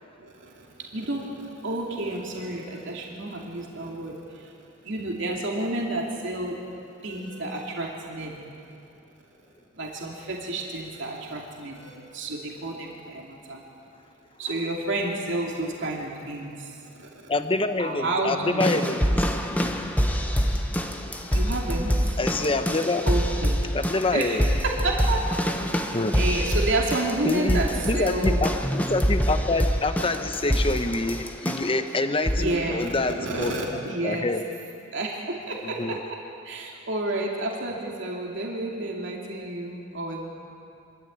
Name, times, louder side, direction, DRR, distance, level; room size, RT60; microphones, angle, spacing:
voice 1, 0.2-4.5 4.8-6.6 7.0-8.4 9.7-13.6 14.4-17.1 17.8-19.0 21.3-22.2 23.0-23.7 24.1-25.3 25.6-28.4 32.3-34.3 34.9-36.0 36.4-40.3, right 2 dB, 65° right, -1 dB, 2.8 m, -30 dB
voice 2, 17.3-19.2 19.6-19.8 21.3-21.5 22.2-23.1 23.7-24.5 25.9-26.2 27.2-33.5 34.0-34.4 35.6-36.0, left 2 dB, 25° left, 8 dB, 1.0 m, -26 dB
sound 1, 18.6-31.8 32.2-32.6 33.4-33.5, equal, 10° left, 1.3 m, -26 dB
25.5 x 13.5 x 8.8 m, 2.6 s
head